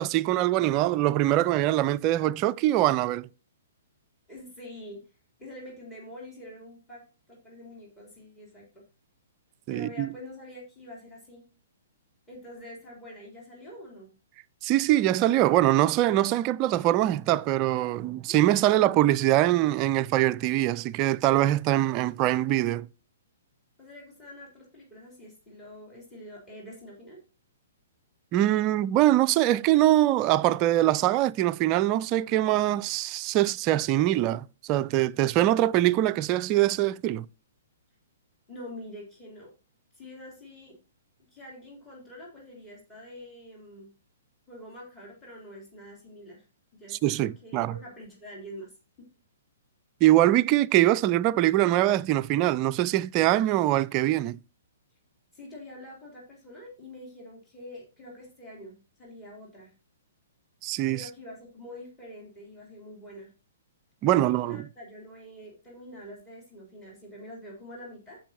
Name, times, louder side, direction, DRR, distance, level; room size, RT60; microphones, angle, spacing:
voice 1, 0.0-3.3 9.7-10.1 14.6-22.9 28.3-37.3 46.9-47.7 50.0-54.4 60.6-61.1 64.0-64.6, right 14 dB, 30° right, 0.3 m, -23 dB
voice 2, 4.3-5.0 5.4-7.0 7.3-8.8 9.7-11.4 12.3-14.1 18.3-18.4 23.8-27.2 38.5-39.5 39.9-40.7 41.3-43.9 44.5-46.5 46.7-48.7 49.0-49.1 55.3-59.7 60.9-63.3 64.0-68.2, left 1 dB, 15° left, 3.3 m, -45 dB
15.5 x 5.3 x 2.8 m
figure-of-eight pair, 115°, 0 cm